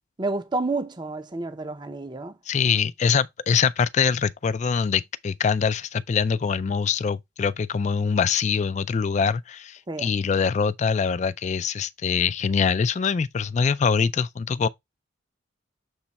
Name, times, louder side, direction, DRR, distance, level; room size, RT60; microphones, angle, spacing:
voice 1, 0.2-2.3 9.9-10.1, right 3 dB, 25° right, 0.6 m, -29 dB
voice 2, 2.5-14.7, left 6 dB, 35° left, 0.3 m, -24 dB
7.2 x 3.2 x 4.1 m
head